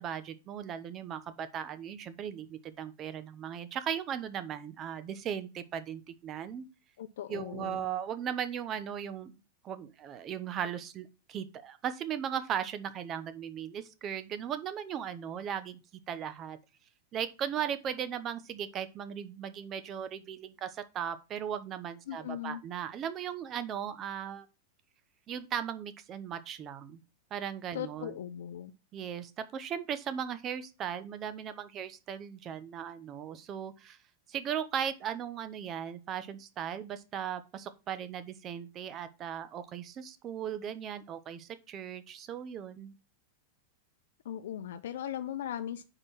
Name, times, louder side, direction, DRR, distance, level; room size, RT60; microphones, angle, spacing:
voice 1, 0.0-6.7 7.3-9.3 9.6-15.8 16.1-16.6 17.1-24.5 25.3-27.0 27.3-28.1 28.9-34.0 34.3-42.9, right 8 dB, 30° right, 0.8 m, -37 dB
voice 2, 7.0-7.8 22.1-22.6 27.7-28.7 44.2-45.8, left 10 dB, 80° left, 0.5 m, -38 dB
4.9 x 4.4 x 5.6 m
supercardioid pair, 130°, 0 cm